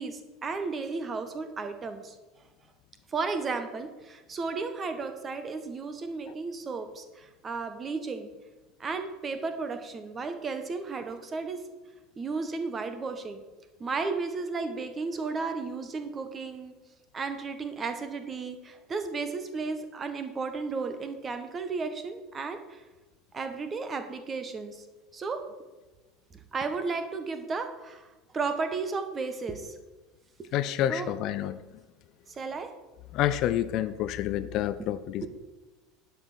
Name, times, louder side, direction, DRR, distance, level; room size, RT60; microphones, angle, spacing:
voice 1, 0.0-2.1 3.1-8.3 8.8-11.6 12.2-13.4 13.8-16.7 17.1-22.8 23.3-24.9 25.1-25.4 26.5-29.8 30.4-30.5 30.9-31.1 32.3-32.7 35.2-35.3, right 4 dB, 25° right, 8 dB, 1.3 m, -34 dB
voice 2, 30.5-31.6 33.1-35.3, left 12 dB, 50° left, 13 dB, 0.5 m, -28 dB
11.0 x 5.5 x 6.1 m, 1.2 s
figure-of-eight pair, 70°, 0 cm